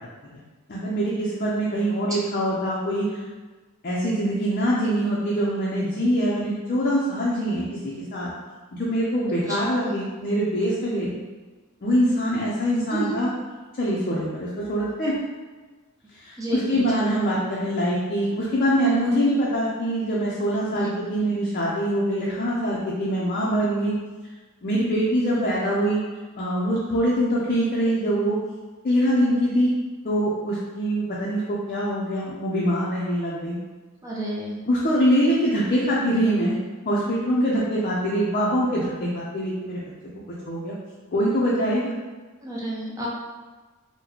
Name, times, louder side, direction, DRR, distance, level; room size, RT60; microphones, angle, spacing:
voice 1, 0.7-3.2 3.8-8.3 8.8-11.1 11.8-13.3 13.8-15.1 16.2-23.9 24.6-26.0 26.4-28.4 28.8-29.7 30.0-33.6 34.7-36.6 36.9-39.8 40.5-40.7 41.1-41.9, equal, 40° left, -6 dB, 0.5 m, -24 dB
voice 2, 16.4-16.9 20.8-20.9 34.0-34.6 42.4-43.1, right 1 dB, 15° right, -4 dB, 0.5 m, -30 dB
3.9 x 2.1 x 2.9 m, 1.3 s
head